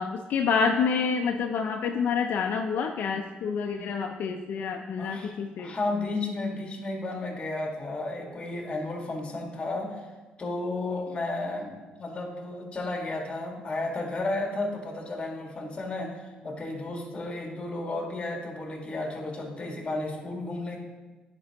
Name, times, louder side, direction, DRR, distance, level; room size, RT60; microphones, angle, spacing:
voice 1, 0.0-5.7, left 5 dB, 65° left, 4 dB, 0.4 m, -28 dB
voice 2, 5.0-10.1 10.4-20.8, left 2 dB, 30° left, 1 dB, 1.7 m, -33 dB
9.7 x 5.2 x 2.9 m, 1.2 s
cardioid pair, 85°, 3 cm